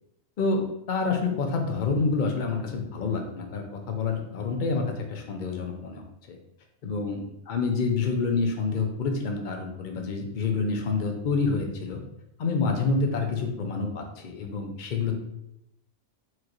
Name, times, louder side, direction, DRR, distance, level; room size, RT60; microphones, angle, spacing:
voice 1, 0.4-6.0 6.3-6.4 6.8-12.0 12.4-15.2, left 4 dB, 65° left, 3 dB, 0.5 m, -28 dB
4.6 x 2.5 x 2.9 m, 0.82 s
omnidirectional pair, 1.5 m